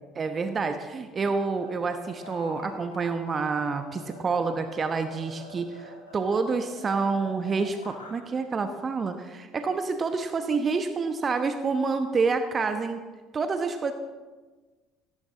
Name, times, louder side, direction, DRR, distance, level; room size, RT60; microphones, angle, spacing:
voice 1, 0.1-13.0 13.3-13.9, right 4 dB, 30° right, 8 dB, 1.1 m, -28 dB
sound 1, 1.3-8.2, left 2 dB, 80° left, 2.8 m, -46 dB
18.0 x 17.0 x 3.9 m, 1.3 s
figure-of-eight pair, 60°, 0 cm